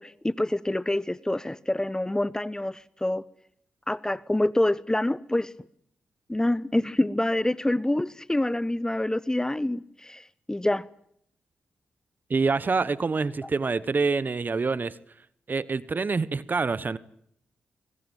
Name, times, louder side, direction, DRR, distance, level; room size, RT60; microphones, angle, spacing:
voice 1, 0.0-3.2 3.9-5.5 6.3-10.9 13.4-13.5, left 1 dB, 15° left, 0.9 m, -26 dB
voice 2, 12.3-15.0 15.5-17.0, right 4 dB, 45° right, 1.1 m, -26 dB
25.0 x 21.0 x 9.1 m
supercardioid pair, 40°, 4 cm